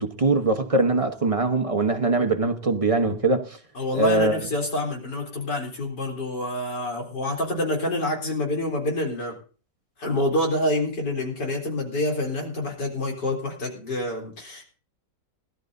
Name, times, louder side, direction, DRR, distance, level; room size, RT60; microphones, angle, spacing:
voice 1, 0.0-3.6 3.9-4.4, right 3 dB, 25° right, 0.9 m, -22 dB
voice 2, 3.8-9.3 10.0-14.6, left 1 dB, 75° left, 4.3 m, -27 dB
20.5 x 12.5 x 2.7 m
omnidirectional pair, 1.8 m